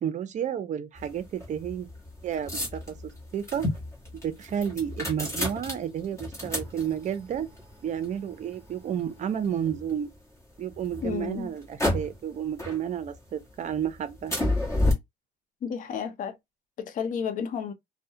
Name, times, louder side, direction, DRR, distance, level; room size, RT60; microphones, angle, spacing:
voice 1, 0.0-1.9 2.2-3.0 3.3-3.7 4.2-7.5 7.8-10.1 10.6-14.3, right 9 dB, 45° right, 0.5 m, -31 dB
sound 1, 1.0-10.2 10.7-12.3 12.6-13.4 13.7-14.9, left 1 dB, 15° left, 1.1 m, -32 dB
voice 2, 11.0-11.5 15.6-16.4 16.8-17.7, left 7 dB, 50° left, 0.6 m, -31 dB
2.3 x 2.1 x 2.7 m
cardioid pair, 110°, 17 cm